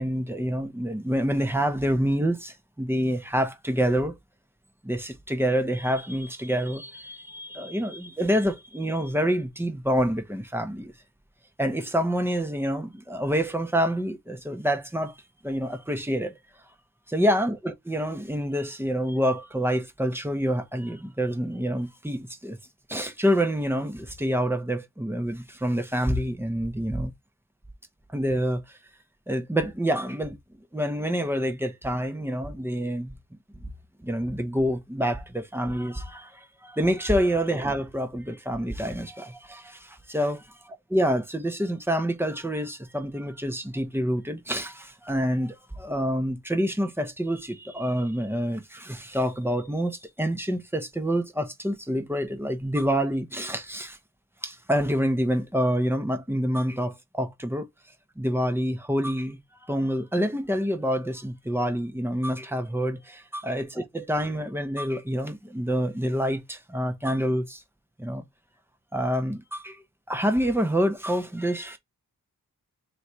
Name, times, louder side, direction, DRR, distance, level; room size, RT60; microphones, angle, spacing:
voice 1, 0.0-4.1 4.8-10.9 11.6-15.2 15.4-16.4 17.1-22.6 22.9-27.1 28.1-28.8 29.3-30.4 30.7-33.1 34.0-54.0 54.4-57.7 58.2-63.2 63.5-67.6 68.0-68.2 68.9-71.8, equal, 5° right, 0.8 m, -27 dB
3.1 x 2.7 x 4.4 m
wide cardioid pair, 75°, 35 cm